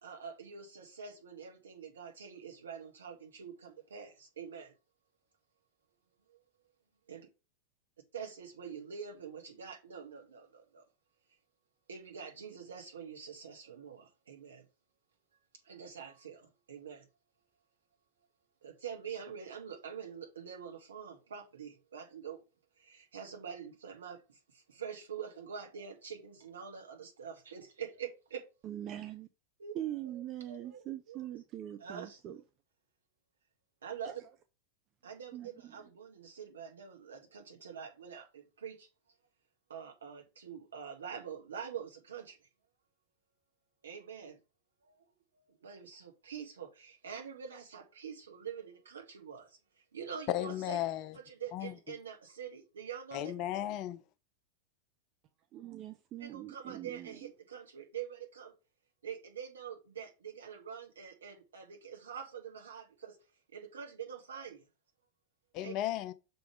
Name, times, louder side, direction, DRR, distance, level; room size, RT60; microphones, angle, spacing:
voice 1, 0.0-4.7 6.3-6.4 7.1-7.3 8.1-10.8 11.9-14.6 15.6-17.0 18.6-22.4 22.8-28.4 29.6-29.8 30.0-31.2 31.8-32.2 33.8-34.1 35.0-38.9 39.7-42.5 43.8-44.4 44.8-45.1 45.3-50.8 51.1-53.3 56.2-58.5 59.0-63.2 63.5-64.6 65.6-65.7, right 7 dB, 70° right, 1.6 m, -45 dB
voice 2, 28.6-29.3 29.7-32.4 34.0-34.2 35.3-35.7 55.5-57.3, right 12 dB, 35° right, 0.5 m, -42 dB
voice 3, 50.3-51.1 51.5-51.7 53.1-54.0 65.5-66.1, left 12 dB, 40° left, 0.5 m, -35 dB
6.2 x 3.5 x 4.8 m
figure-of-eight pair, 90°, 0 cm